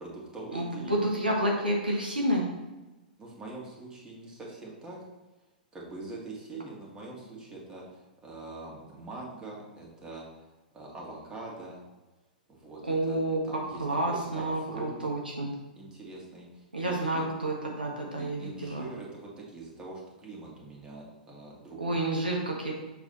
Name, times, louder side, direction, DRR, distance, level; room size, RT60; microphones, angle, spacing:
voice 1, 0.0-1.1 3.2-5.0 5.7-10.2 10.7-11.8 12.5-13.2 13.4-14.9 15.8-17.3 18.2-22.0, right 2 dB, 15° right, -3 dB, 2.0 m, -43 dB
voice 2, 0.5-2.4 12.9-15.5 16.7-18.9 21.8-22.7, right 1 dB, 85° right, -1 dB, 1.4 m, -29 dB
7.4 x 4.0 x 4.0 m, 1.1 s
figure-of-eight pair, 105°, 5 cm